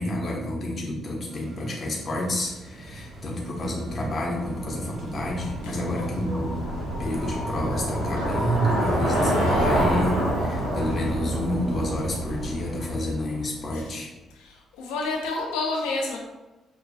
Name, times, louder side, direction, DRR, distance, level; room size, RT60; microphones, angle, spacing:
voice 1, 0.0-6.6 7.0-14.1, left 1 dB, 45° left, -1 dB, 0.8 m, -29 dB
sound 1, 1.3-12.8, right 2 dB, 55° right, 0.8 m, -40 dB
Bicycle, 2.9-13.8, equal, 85° right, 0.7 m, -28 dB
voice 2, 5.6-6.2 13.7-13.8 14.3-16.2, left 3 dB, 75° left, 0 dB, 0.5 m, -30 dB
5.1 x 2.3 x 2.3 m, 1.1 s
figure-of-eight pair, 40°, 0 cm